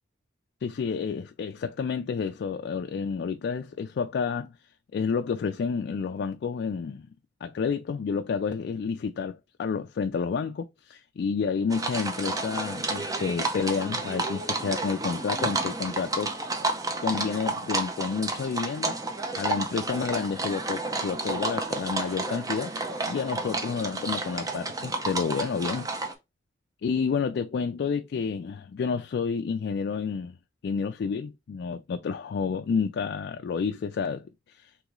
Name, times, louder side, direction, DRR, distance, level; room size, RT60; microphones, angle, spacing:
voice 1, 0.6-4.5 4.9-7.1 7.4-16.3 17.0-19.0 19.4-22.7 23.1-25.9 26.8-30.4 30.6-34.7, left 5 dB, 60° left, 0.3 m, -30 dB
sound 1, 11.7-26.1, right 2 dB, 20° right, 0.6 m, -31 dB
3.0 x 3.0 x 3.6 m
head